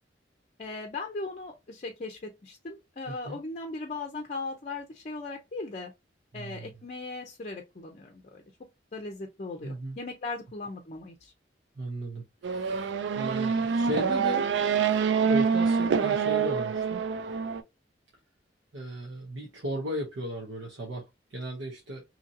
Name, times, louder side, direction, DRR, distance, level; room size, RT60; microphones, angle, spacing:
voice 1, 0.6-5.9 6.3-8.4 8.9-11.3, left 3 dB, 40° left, 0.5 m, -38 dB
voice 2, 3.1-3.4 6.3-6.7 9.6-10.0 11.8-14.8 15.2-17.0 18.7-22.0, right 1 dB, 85° right, 0.8 m, -36 dB
Race car auto racing / Accelerating revving vroom, 12.4-17.6, right 6 dB, 70° right, 0.3 m, -26 dB
2.8 x 2.6 x 2.6 m
head